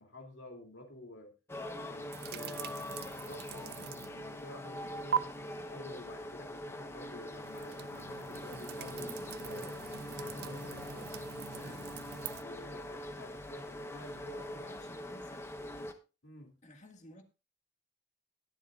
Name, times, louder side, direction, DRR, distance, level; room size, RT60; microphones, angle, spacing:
voice 1, 0.0-1.3 1.7-2.8 3.2-9.8 10.2-11.1 11.5-11.9 12.4-14.9 16.2-16.5, left 1 dB, 65° left, 2.8 m, -51 dB
sound 1, 1.5-15.9, left 1 dB, 15° left, 1.0 m, -43 dB
sound 2, 2.1-4.3 4.6-5.2 7.3-12.4, right 8 dB, 50° right, 0.5 m, -41 dB
voice 2, 14.5-15.5 16.6-17.2, left 1 dB, 40° left, 1.9 m, -54 dB
21.0 x 7.3 x 2.4 m
head